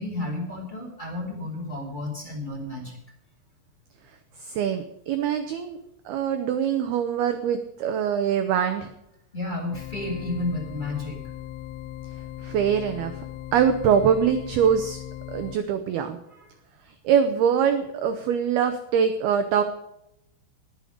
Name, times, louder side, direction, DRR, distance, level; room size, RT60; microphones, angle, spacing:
voice 1, 0.0-3.0 9.3-11.2 16.3-16.5, left 2 dB, 15° left, 0 dB, 1.9 m, -32 dB
voice 2, 4.4-5.8 6.1-8.9 12.4-13.1 13.5-15.0 15.3-16.2 17.0-19.6, right 8 dB, 90° right, 8 dB, 2.2 m, -23 dB
sound 1, 9.7-15.6, left 13 dB, 80° left, 3.1 m, -38 dB
20.0 x 6.9 x 5.1 m, 0.83 s
omnidirectional pair, 5.7 m